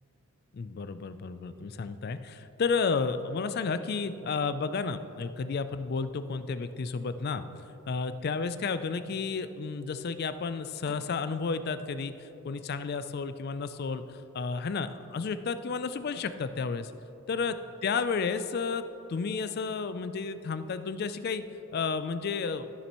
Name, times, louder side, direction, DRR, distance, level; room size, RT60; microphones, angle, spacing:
voice 1, 0.5-7.4 7.9-16.9 17.3-17.6 17.8-18.8 19.1-21.4 21.7-22.7, left 5 dB, 50° left, 12 dB, 0.4 m, -32 dB
13.5 x 7.0 x 3.0 m, 3.0 s
head